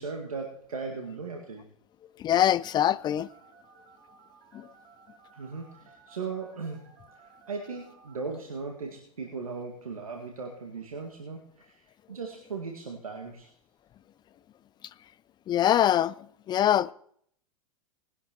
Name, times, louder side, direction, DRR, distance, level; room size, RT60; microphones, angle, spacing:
voice 1, 0.0-1.7 5.3-13.5, right 4 dB, 85° right, 1.9 m, -38 dB
voice 2, 2.2-3.3 4.5-4.7 15.5-16.1 16.5-16.9, left 11 dB, 25° left, 0.4 m, -23 dB
Telephone, 2.4-8.2, right 5 dB, 40° right, 4.0 m, -57 dB
19.5 x 12.0 x 3.0 m
hypercardioid pair, 95°, 18 cm